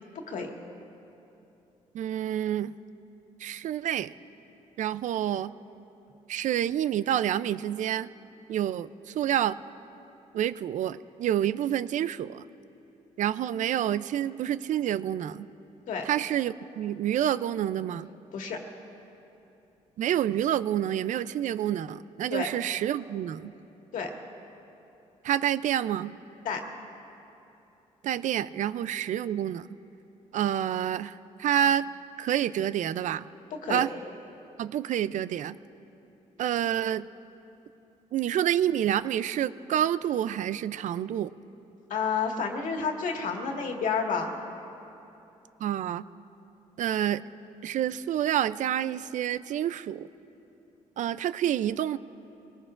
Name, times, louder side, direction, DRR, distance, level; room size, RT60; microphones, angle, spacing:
voice 1, 1.9-2.7 3.4-4.1 4.8-5.5 6.3-8.1 8.5-9.6 10.3-12.4 13.2-15.5 16.1-18.1 20.0-23.5 25.2-26.2 28.0-29.7 30.3-31.9 32.2-33.2 33.7-33.9 34.6-35.6 36.4-37.1 38.1-41.3 45.6-46.0 46.8-47.2 47.6-50.1 51.0-52.0, right 11 dB, 70° right, 16 dB, 0.4 m, -28 dB
voice 2, 41.9-44.3, left 5 dB, 75° left, 2 dB, 1.8 m, -30 dB
23.5 x 19.0 x 2.5 m, 2.9 s
cardioid pair, 90°, 13 cm